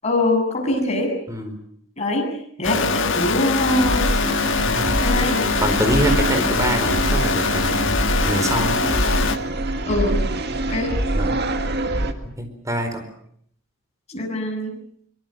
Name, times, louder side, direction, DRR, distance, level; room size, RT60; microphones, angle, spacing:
voice 1, 0.0-1.1 2.0-2.3 2.6-4.1 5.0-5.5 9.9-10.2 10.7-10.9 14.1-14.7, left 2 dB, 30° left, 1 dB, 7.8 m, -23 dB
sound 1, 2.6-9.4, left 4 dB, 60° left, 1.6 m, -23 dB
sound 2, 3.7-12.1, right 1 dB, 55° right, 2.0 m, -24 dB
voice 2, 4.7-5.0 5.6-8.8 11.1-11.4 12.4-13.0, right 1 dB, 15° right, 7 dB, 4.5 m, -25 dB
24.5 x 23.0 x 7.8 m, 0.66 s
head